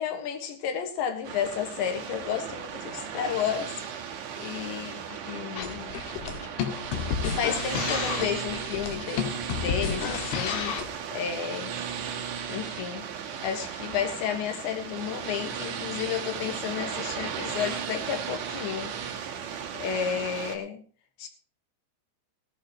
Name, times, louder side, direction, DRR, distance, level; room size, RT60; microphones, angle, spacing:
voice 1, 0.0-3.7 4.4-6.0 7.2-9.3 9.6-10.7 11.1-11.7 12.5-13.1 13.4-18.9 19.7-20.8 21.2-21.3, left 8 dB, 70° left, 7 dB, 3.7 m, -32 dB
sound 1, 1.2-20.6, right 7 dB, 65° right, 1.8 m, -36 dB
sound 2, 5.6-11.0, left 7 dB, 90° left, 4.4 m, -31 dB
17.5 x 12.0 x 3.0 m, 0.39 s
omnidirectional pair, 5.5 m